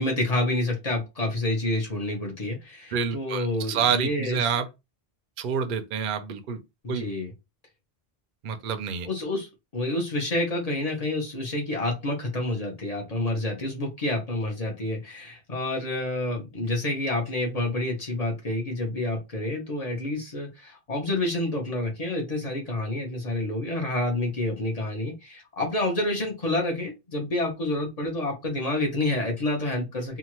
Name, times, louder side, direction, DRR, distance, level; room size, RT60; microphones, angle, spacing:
voice 1, 0.0-4.5 6.8-7.3 9.0-30.2, left 2 dB, 40° left, 0.9 m, -28 dB
voice 2, 2.9-4.7 5.4-6.6 6.9-7.0 8.4-9.1, right 7 dB, 60° right, 0.6 m, -28 dB
2.8 x 2.4 x 3.0 m
omnidirectional pair, 1.1 m